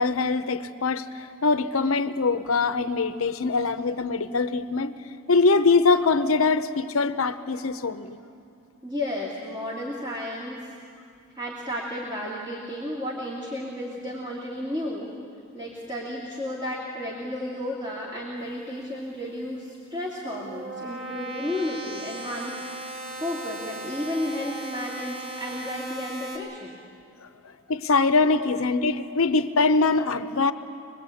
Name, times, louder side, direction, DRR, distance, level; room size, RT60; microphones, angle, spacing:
voice 1, 0.0-4.9 5.3-8.2 27.7-30.5, left 4 dB, 75° left, 10 dB, 0.8 m, -23 dB
voice 2, 8.8-10.7 11.4-15.1 15.5-22.6 23.2-26.8 28.3-28.5, left 1 dB, 20° right, -4 dB, 2.5 m, -33 dB
sound 1, 19.9-26.4, right 1 dB, 65° right, 5.2 m, -37 dB
25.0 x 20.5 x 8.4 m, 2.4 s
head